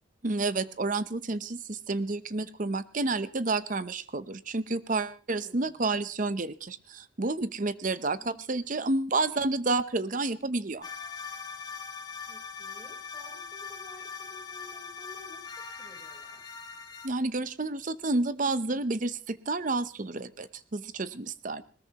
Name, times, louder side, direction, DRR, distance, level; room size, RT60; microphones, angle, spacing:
voice 1, 0.2-10.9 17.0-21.6, right 3 dB, 40° right, 14 dB, 0.7 m, -30 dB
voice 2, 5.4-6.1 8.2-8.9 12.2-16.7, equal, 5° right, -2 dB, 4.0 m, -54 dB
sound 1, 10.8-17.1, left 6 dB, 20° left, 1.6 m, -41 dB
21.0 x 19.5 x 3.0 m, 0.38 s
head